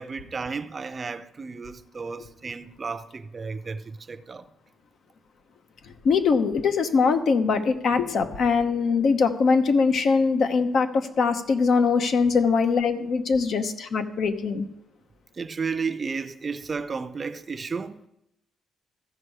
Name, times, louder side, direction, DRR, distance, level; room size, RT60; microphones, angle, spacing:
voice 1, 0.0-4.5 15.3-18.1, right 5 dB, 35° right, 0.6 m, -33 dB
voice 2, 6.0-14.7, left 5 dB, 65° left, 0.9 m, -22 dB
14.5 x 5.4 x 4.8 m
cardioid pair, 90°, 0 cm